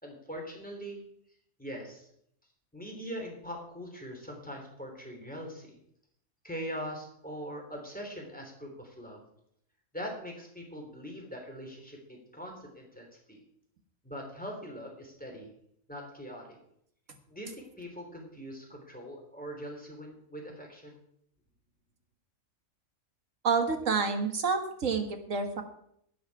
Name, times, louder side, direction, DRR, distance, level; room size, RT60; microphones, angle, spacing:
voice 1, 0.0-1.0 1.6-2.1 2.7-5.8 6.4-9.2 9.9-13.4 14.0-15.5 15.9-16.5 17.3-21.0, equal, 5° left, 0 dB, 3.1 m, -42 dB
voice 2, 23.4-25.6, right 5 dB, 75° right, 6 dB, 1.8 m, -28 dB
11.5 x 9.6 x 4.8 m, 0.70 s
omnidirectional pair, 1.4 m